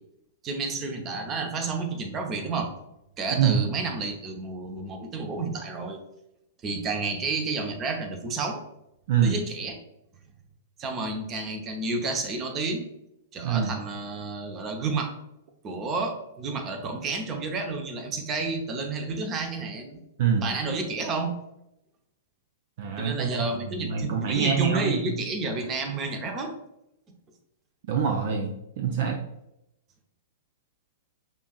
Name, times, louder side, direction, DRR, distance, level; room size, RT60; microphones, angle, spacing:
voice 1, 0.4-2.7 3.2-6.0 6.6-8.6 9.2-9.7 10.8-12.9 13.3-15.1 15.6-20.0 20.4-21.4 23.0-26.5, right 3 dB, 30° right, 4 dB, 0.7 m, -30 dB
voice 2, 13.4-13.7 20.2-20.4 22.8-25.0 27.9-29.2, right 7 dB, 55° right, 3 dB, 0.4 m, -25 dB
5.2 x 2.6 x 2.3 m, 0.84 s
hypercardioid pair, 110°, 0 cm